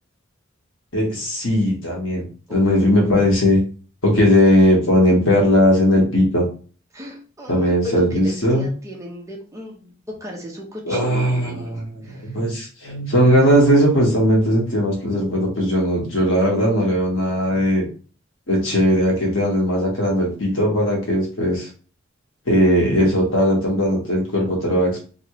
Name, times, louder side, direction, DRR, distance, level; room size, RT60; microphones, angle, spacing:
voice 1, 0.9-2.2 2.5-3.6 4.0-6.4 7.5-8.7 10.9-11.9 12.2-17.8 18.5-21.7 22.5-24.9, equal, 85° left, -1 dB, 1.3 m, -18 dB
voice 2, 2.5-3.1 6.9-9.9 10.2-12.4, left 1 dB, 15° right, -1 dB, 0.8 m, -35 dB
2.9 x 2.5 x 3.0 m, 0.39 s
head